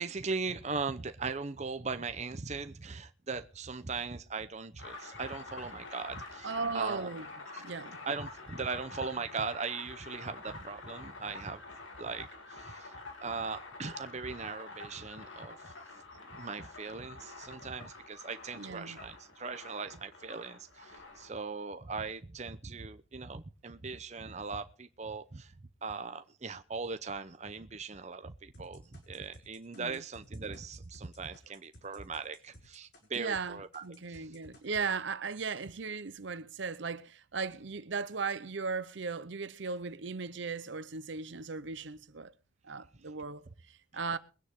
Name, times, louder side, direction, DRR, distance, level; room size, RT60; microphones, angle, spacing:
voice 1, 0.0-7.1 7.5-7.6 8.0-11.6 12.0-15.7 16.3-25.5 25.8-34.3, right 4 dB, 35° right, 0.7 m, -39 dB
sound 1, 4.8-21.3, left 3 dB, 75° left, 3.1 m, -48 dB
voice 2, 6.4-7.3 7.6-8.1 18.5-19.0 29.7-30.0 33.1-42.3 42.6-44.2, right 4 dB, 65° right, 0.8 m, -37 dB
sound 2, 28.5-33.5 33.7-34.9, left 1 dB, 55° left, 5.3 m, -57 dB
22.5 x 9.8 x 3.6 m
head